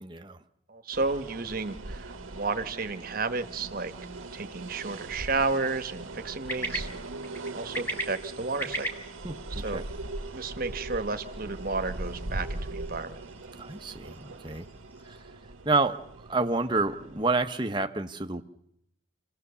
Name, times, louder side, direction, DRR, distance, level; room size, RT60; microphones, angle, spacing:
voice 1, 0.0-0.4 9.2-9.8 13.6-14.7 15.0-15.2 15.6-16.0 16.3-18.4, right 3 dB, 25° right, 6 dB, 0.9 m, -29 dB
voice 2, 0.7-3.9 4.3-6.9 7.5-8.9 9.5-9.8 10.3-13.2, right 3 dB, 45° right, 9 dB, 1.1 m, -32 dB
sound 1, 0.9-17.5, right 2 dB, 90° right, 1.2 m, -40 dB
sound 2, 3.6-15.3, right 1 dB, 10° left, 1.8 m, -42 dB
27.0 x 17.5 x 6.9 m, 0.77 s
head